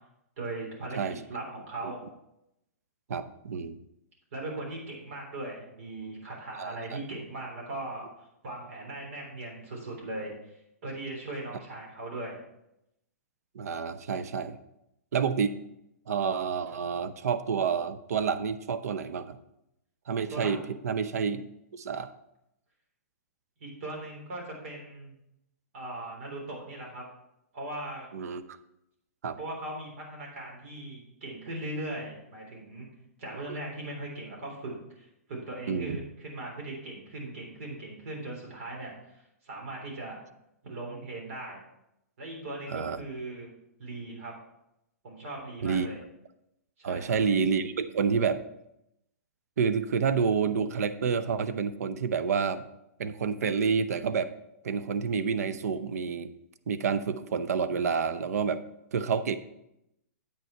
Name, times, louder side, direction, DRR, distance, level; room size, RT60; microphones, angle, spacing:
voice 1, 0.4-1.0 1.3-2.0 4.3-8.1 8.4-10.3 10.8-12.4 20.3-20.5 23.6-25.1 25.7-27.0 27.5-28.1 29.4-32.9 33.2-40.2 40.6-41.6 42.2-43.5 43.8-44.3 45.0-46.0 46.8-47.2, right 2 dB, 60° right, -1 dB, 3.5 m, -39 dB
voice 2, 3.1-3.8 6.6-7.0 13.5-14.6 15.1-15.6 16.1-19.4 20.1-20.6 20.8-21.4 21.7-22.1 28.1-28.4 29.2-29.4 35.7-36.0 42.7-43.0 45.6-45.9 46.8-48.4 49.6-52.6 53.0-54.3 54.6-56.3 56.7-58.6 58.9-59.4, right 6 dB, 75° right, 14 dB, 0.7 m, -29 dB
8.3 x 6.5 x 4.4 m, 0.83 s
hypercardioid pair, 150°, 8 cm